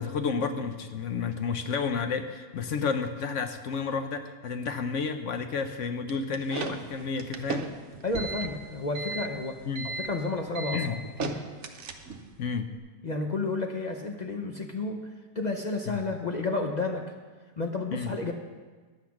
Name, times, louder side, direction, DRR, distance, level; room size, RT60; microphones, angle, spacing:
voice 1, 0.0-7.7 9.7-9.9 10.7-11.0 12.4-12.7 15.9-16.0 17.9-18.1, left 5 dB, 65° left, 8 dB, 0.9 m, -31 dB
sound 1, 6.1-12.3, right 4 dB, 55° right, 1.0 m, -36 dB
voice 2, 8.0-9.6 9.8-11.4 13.0-15.1 15.3-17.0 17.6-18.3, left 3 dB, 45° left, 3 dB, 0.6 m, -31 dB
10.5 x 8.2 x 5.8 m, 1.4 s
omnidirectional pair, 1.6 m